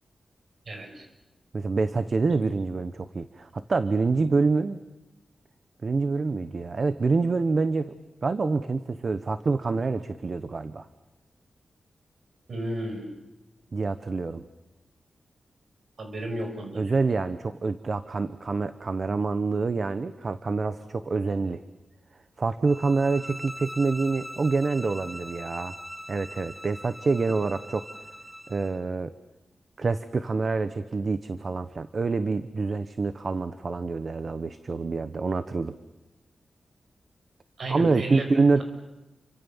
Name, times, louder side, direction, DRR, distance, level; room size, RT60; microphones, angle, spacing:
voice 1, 0.7-1.1 12.5-13.1 16.0-16.9 37.6-38.3, right 1 dB, 60° right, 5 dB, 6.0 m, -33 dB
voice 2, 1.5-4.8 5.8-7.9 8.2-10.9 13.7-14.4 16.7-21.6 22.4-25.7 26.1-27.9 28.5-29.1 29.8-35.7 37.7-38.6, right 4 dB, 45° right, 12 dB, 1.0 m, -26 dB
sound 1, 22.7-28.8, equal, ahead, 2.3 m, -41 dB
29.0 x 25.0 x 7.2 m, 1.0 s
wide cardioid pair, 125°, 0 cm